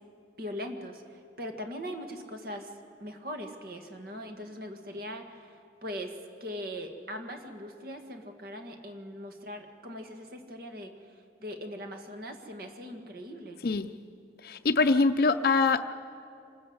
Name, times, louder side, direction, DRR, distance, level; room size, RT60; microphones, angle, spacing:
voice 1, 0.4-2.7 3.0-13.6, equal, 55° right, 5 dB, 1.8 m, -40 dB
voice 2, 14.4-15.8, left 3 dB, 55° left, 7 dB, 0.5 m, -24 dB
25.5 x 14.0 x 7.9 m, 2.5 s
head